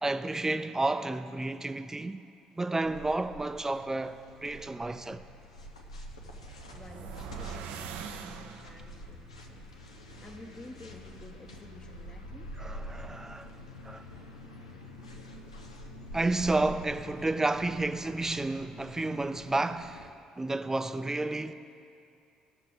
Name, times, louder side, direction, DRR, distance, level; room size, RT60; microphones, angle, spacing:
voice 1, 0.0-2.3 2.6-5.2 12.6-13.5 13.8-14.1 16.1-20.1 20.4-21.5, right 2 dB, 15° right, 0.5 m, -31 dB
sound 1, 2.8-20.1, equal, 90° left, 0.6 m, -46 dB
sound 2, 6.2-9.0, right 7 dB, 65° right, 0.5 m, -43 dB
voice 2, 6.7-9.7 10.2-12.5, left 1 dB, 25° left, 0.9 m, -51 dB
17.0 x 6.6 x 3.9 m
figure-of-eight pair, 50°, 3 cm